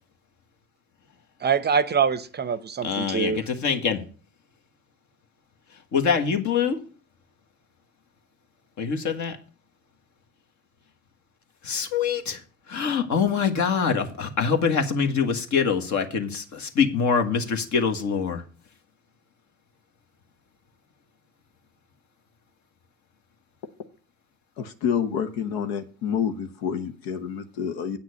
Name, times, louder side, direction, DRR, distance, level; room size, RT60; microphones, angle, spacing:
voice 1, 1.4-3.4, right 6 dB, 25° right, 0.7 m, -24 dB
voice 2, 2.8-4.0 5.9-6.8 8.8-9.4 11.6-12.4 12.7-18.4, left 6 dB, 50° left, 1.7 m, -24 dB
voice 3, 24.6-28.0, left 7 dB, 65° left, 1.1 m, -28 dB
8.6 x 6.2 x 6.5 m
hypercardioid pair, 65°, 38 cm